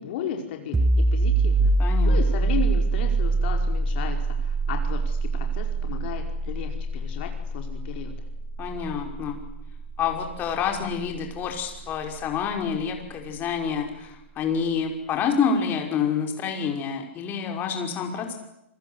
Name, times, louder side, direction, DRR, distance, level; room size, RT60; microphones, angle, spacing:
voice 1, 0.0-1.7 2.0-8.1, left 8 dB, 55° left, 3 dB, 4.9 m, -34 dB
sound 1, 0.7-12.2, right 3 dB, 10° right, 1.9 m, -25 dB
voice 2, 1.8-2.4 8.6-9.4 10.0-18.3, left 6 dB, 30° left, 3 dB, 5.7 m, -28 dB
27.5 x 24.5 x 8.2 m, 0.84 s
hypercardioid pair, 130°, 7 cm